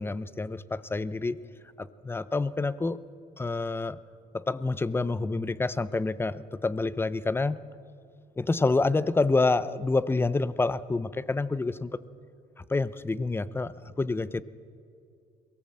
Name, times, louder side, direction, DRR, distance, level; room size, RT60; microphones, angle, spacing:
voice 1, 0.0-1.4 1.8-3.0 3.4-4.0 4.3-7.6 8.4-12.0 12.7-14.4, left 3 dB, 15° left, 17 dB, 0.6 m, -28 dB
22.5 x 17.0 x 7.6 m, 2.5 s
cardioid pair, 110°, 17 cm